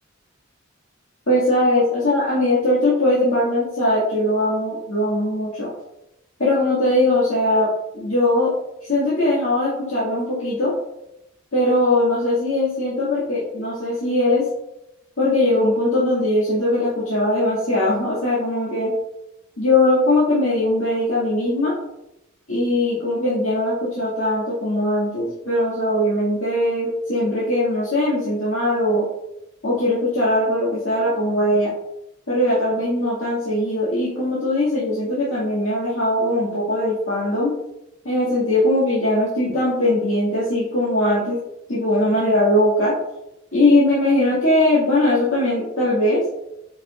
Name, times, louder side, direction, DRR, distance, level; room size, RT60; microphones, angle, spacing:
voice 1, 1.3-5.7 6.4-8.5 8.8-10.7 11.5-14.5 15.2-18.9 19.6-21.7 22.5-29.0 29.6-31.7 32.3-37.5 38.0-41.4 41.7-42.9 43.5-46.2, left 1 dB, 75° left, -9 dB, 2.1 m, -20 dB
7.9 x 5.3 x 2.4 m, 0.88 s
head